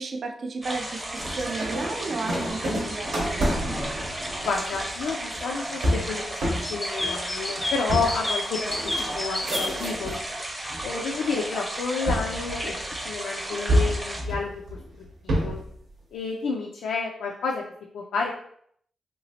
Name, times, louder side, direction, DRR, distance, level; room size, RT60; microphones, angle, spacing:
voice 1, 0.0-3.6, right 3 dB, 60° right, 4 dB, 0.4 m, -33 dB
sound 1, 0.6-14.2, right 1 dB, 20° right, 0.7 m, -34 dB
sound 2, 1.2-10.3 10.7-11.3 12.1-13.1 13.7-15.7, equal, 75° right, 0.8 m, -29 dB
voice 2, 4.4-6.4 6.7-10.2 10.8-14.5 15.2-15.6 16.1-17.6 17.9-18.3, left 4 dB, 85° left, 0 dB, 0.3 m, -30 dB
sound 3, 6.6-9.7, left 1 dB, 15° left, 0.5 m, -29 dB
2.9 x 2.4 x 2.7 m, 0.67 s
cardioid pair, 65°, 0 cm